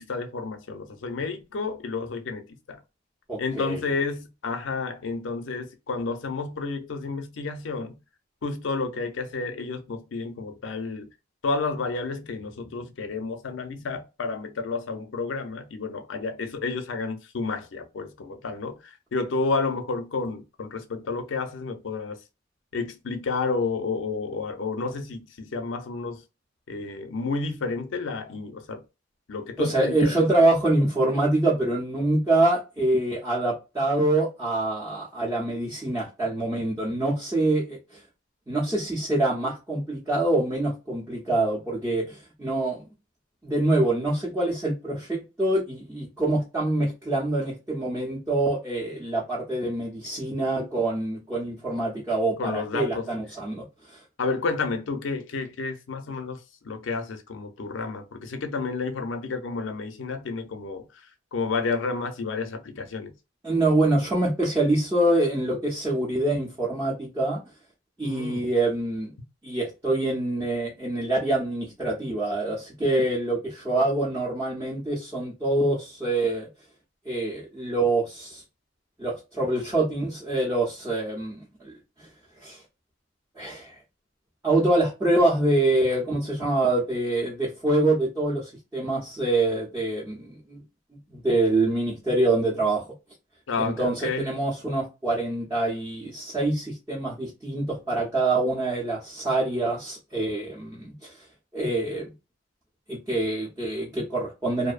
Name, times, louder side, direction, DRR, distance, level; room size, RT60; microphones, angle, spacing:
voice 1, 0.0-2.8 3.4-8.0 8.4-11.1 11.4-22.2 22.7-26.2 26.7-28.8 29.3-30.3 52.4-53.1 54.2-63.1 68.0-68.5 69.2-69.3 93.5-94.4, left 4 dB, 85° left, 0.5 m, -31 dB
voice 2, 3.3-3.8 29.6-38.0 38.5-42.8 43.4-54.0 63.4-67.4 68.0-69.1 69.4-76.5 77.1-78.4 79.0-82.1 82.4-82.6 83.4-83.7 84.4-90.6 91.1-92.8 93.6-101.1 101.5-102.1 102.9-104.7, right 2 dB, 15° right, 0.7 m, -25 dB
2.6 x 2.0 x 2.4 m
head